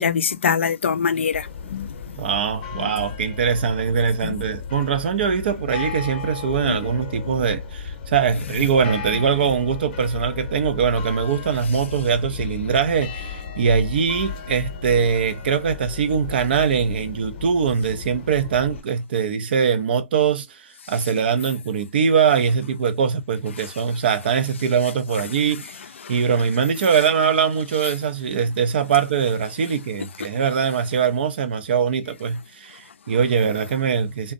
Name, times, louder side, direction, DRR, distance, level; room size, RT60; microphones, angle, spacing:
voice 1, 0.0-1.9 4.2-4.3 6.7-6.8, left 6 dB, 70° left, 0.4 m, -23 dB
sound 1, 1.3-18.8, left 6 dB, 40° left, 0.8 m, -34 dB
voice 2, 2.2-25.8 26.1-34.3, right 6 dB, 50° right, 0.5 m, -22 dB
2.5 x 2.1 x 2.5 m
hypercardioid pair, 140°, 7 cm